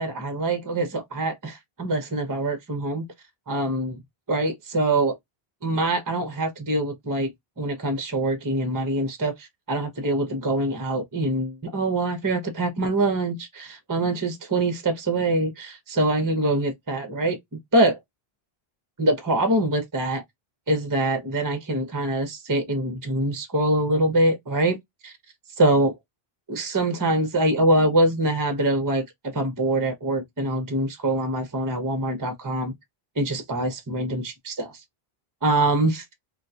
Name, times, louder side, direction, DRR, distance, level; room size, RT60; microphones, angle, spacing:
voice 1, 0.0-3.0 3.5-4.0 4.3-5.1 5.6-7.3 7.6-17.4 17.7-18.0 19.0-20.2 20.7-24.8 25.0-25.1 25.6-25.9 26.5-32.7 33.2-34.7 35.4-36.0, right 1 dB, 20° right, 0.7 m, -24 dB
3.6 x 2.3 x 2.7 m
omnidirectional pair, 1.0 m